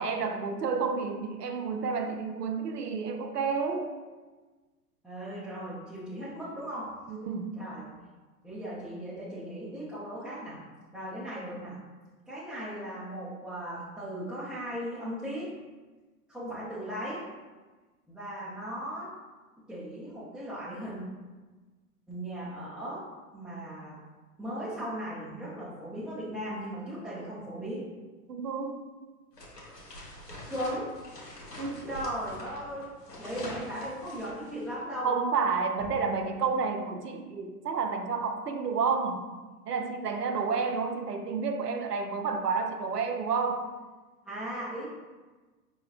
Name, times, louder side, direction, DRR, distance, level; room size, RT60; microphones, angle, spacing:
voice 1, 0.0-3.9 7.1-7.6 28.3-28.9 31.6-32.0 35.0-39.3 39.7-43.7, right 5 dB, 80° right, 6 dB, 0.6 m, -30 dB
voice 2, 5.0-6.9 7.6-7.9 8.4-10.6 10.9-11.8 12.3-15.5 16.3-17.2 18.1-19.1 19.7-21.0 22.1-23.0 23.3-24.0 24.4-27.9 30.5-30.9 31.9-32.9 33.2-35.1 44.2-44.8, equal, ahead, -12 dB, 0.5 m, -37 dB
sound 1, 29.3-34.8, left 1 dB, 85° left, 1.4 m, -45 dB
5.5 x 4.0 x 2.4 m, 1.3 s
figure-of-eight pair, 95°, 47 cm